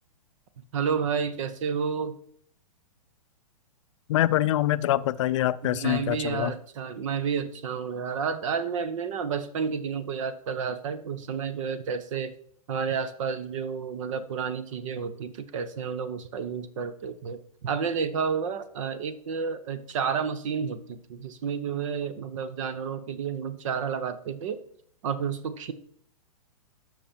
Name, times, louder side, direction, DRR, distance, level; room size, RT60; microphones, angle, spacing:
voice 1, 0.7-2.1 5.6-12.3 12.7-24.6 25.0-25.7, right 6 dB, 55° right, 13 dB, 1.1 m, -31 dB
voice 2, 4.1-6.5, left 14 dB, 55° left, 15 dB, 0.5 m, -25 dB
12.0 x 6.1 x 4.5 m, 0.62 s
hypercardioid pair, 115°, 19 cm